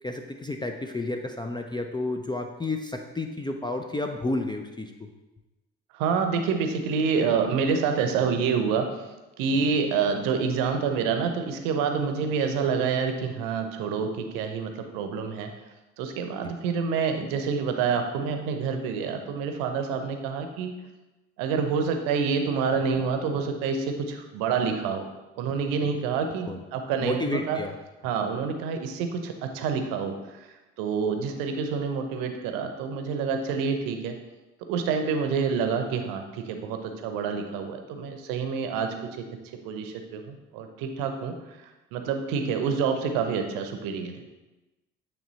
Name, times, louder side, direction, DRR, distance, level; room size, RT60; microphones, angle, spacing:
voice 1, 0.0-5.1 26.2-26.6 27.0-27.7, left 2 dB, 15° left, 4 dB, 0.5 m, -31 dB
voice 2, 5.9-9.0 9.4-15.5 16.0-20.7 21.4-25.1 25.4-27.6 28.0-30.1 30.8-34.2 34.7-38.9 39.6-41.4 41.9-44.2, right 5 dB, 70° right, 6 dB, 0.8 m, -27 dB
8.6 x 3.3 x 4.1 m, 1.1 s
figure-of-eight pair, 45°, 35 cm